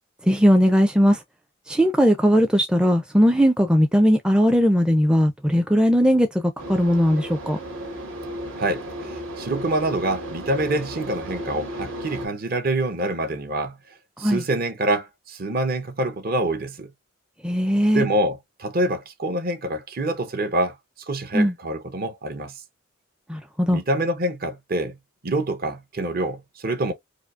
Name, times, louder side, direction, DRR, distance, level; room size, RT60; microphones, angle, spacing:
voice 1, 0.3-1.2 1.7-7.6 14.2-14.4 17.4-18.0 21.3-21.5 23.3-23.8, equal, 5° right, 0.4 m, -19 dB
sound 1, 6.6-12.3, right 1 dB, 80° right, 1.8 m, -34 dB
voice 2, 8.6-13.8 14.2-16.9 17.9-20.8 21.1-22.6 23.7-25.0 25.2-26.9, right 1 dB, 45° right, 0.8 m, -26 dB
5.0 x 2.0 x 2.4 m
head